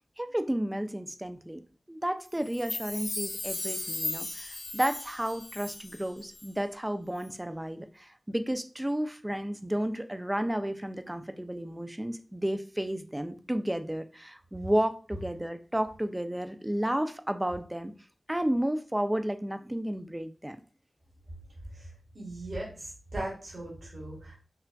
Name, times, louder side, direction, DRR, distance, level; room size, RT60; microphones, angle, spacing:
voice 1, 0.2-1.6 1.9-17.9 18.3-20.6, right 1 dB, 15° right, 8 dB, 0.4 m, -32 dB
Chime, 2.4-6.1 6.3-6.4, left 2 dB, 80° left, 1.1 m, -36 dB
voice 2, 22.1-24.3, right 1 dB, 70° right, -4 dB, 1.7 m, -38 dB
5.7 x 2.4 x 2.3 m, 0.37 s
wide cardioid pair, 85°, 0 cm